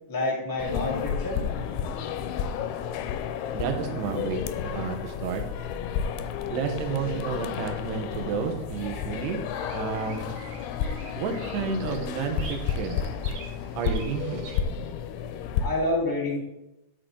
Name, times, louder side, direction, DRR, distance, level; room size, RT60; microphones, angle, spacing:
voice 1, 0.1-1.4 15.6-16.4, left 2 dB, 15° left, -3 dB, 0.6 m, -28 dB
sound 1, 0.6-15.7, left 8 dB, 85° left, 2.6 m, -31 dB
voice 2, 3.5-5.4 6.5-9.4 9.7-10.3 11.2-13.0 13.8-14.4, right 7 dB, 85° right, 4 dB, 3.2 m, -31 dB
Bird vocalization bird call bird song, 9.5-14.6, right 4 dB, 70° right, 3.3 m, -46 dB
11.0 x 6.4 x 3.8 m, 0.91 s
omnidirectional pair, 4.7 m